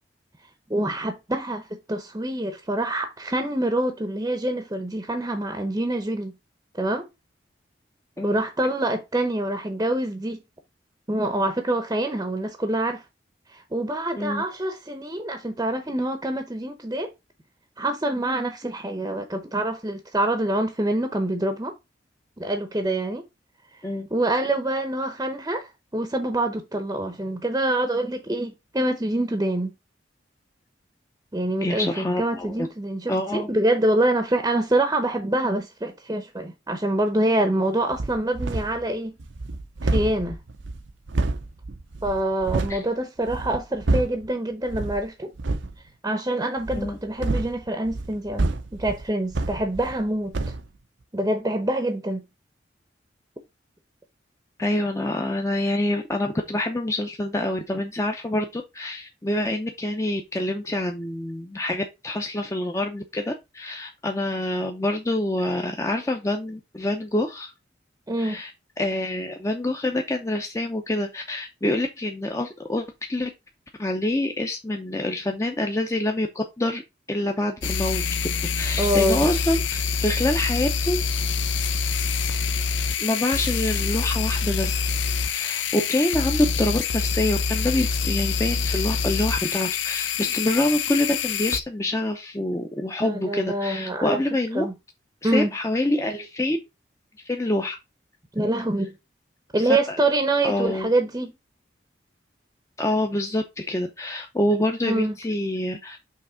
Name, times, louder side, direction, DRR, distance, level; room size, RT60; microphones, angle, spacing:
voice 1, 0.7-6.3 6.8-7.1 8.2-10.4 11.1-13.0 13.5-17.1 17.8-21.7 22.4-23.2 24.1-29.7 31.3-39.1 39.8-40.4 42.0-45.3 46.0-50.5 51.1-52.2 68.1-68.4 78.8-79.3 93.0-94.2 94.5-94.7 95.2-95.5 98.3-98.9 99.5-101.3 104.8-105.1, right 1 dB, 20° right, 0.7 m, -25 dB
voice 2, 31.6-32.7 33.1-33.5 42.7-42.8 46.7-47.0 54.6-67.5 68.2-68.5 68.8-73.3 73.8-76.8 77.1-78.0 78.6-81.0 83.0-84.9 85.2-94.7 95.2-96.6 97.2-97.8 99.9-100.0 100.4-100.9 102.8-106.0, left 1 dB, 15° left, 0.6 m, -26 dB
sound 1, 37.9-38.9 39.2-42.8 43.2-44.3 44.7-45.0 45.4-45.7 46.6-50.1 50.3-50.7, right 2 dB, 85° right, 0.7 m, -28 dB
sound 2, 77.6-91.6, left 5 dB, 80° left, 0.6 m, -26 dB
5.6 x 3.5 x 4.9 m
head